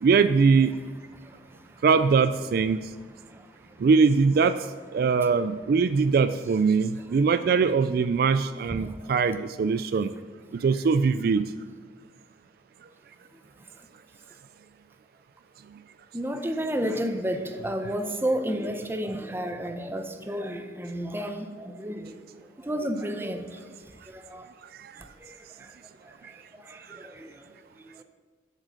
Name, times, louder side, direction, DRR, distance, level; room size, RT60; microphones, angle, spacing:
voice 1, 0.0-0.7 1.8-2.8 3.8-4.5 4.9-10.1 10.6-11.4, right 5 dB, 60° right, 12 dB, 0.3 m, -21 dB
voice 2, 16.1-22.1 22.6-23.6 24.1-24.4 27.0-27.3, equal, 15° right, 7 dB, 0.7 m, -31 dB
7.5 x 7.4 x 6.4 m, 1.5 s
head